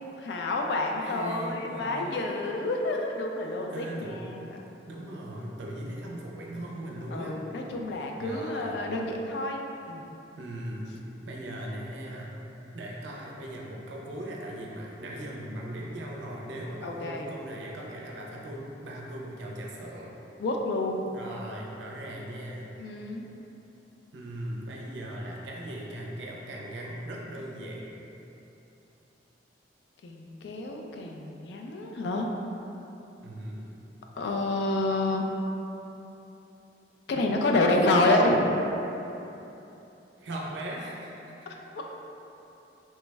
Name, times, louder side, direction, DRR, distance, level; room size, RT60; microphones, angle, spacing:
voice 1, 0.1-4.5 7.1-10.1 16.8-17.3 20.4-21.1 22.8-23.3 30.0-32.3 34.2-35.2 37.1-38.5 41.8-41.9, left 2 dB, 65° left, 1 dB, 0.3 m, -28 dB
voice 2, 1.0-2.3 3.7-4.3 4.9-7.4 8.2-8.8 10.4-10.9 11.3-12.4 12.7-20.1 21.1-22.7 24.1-27.9 33.2-33.7 40.2-41.3, right 1 dB, 80° right, -2 dB, 0.4 m, -38 dB
3.2 x 2.0 x 3.3 m, 3.0 s
head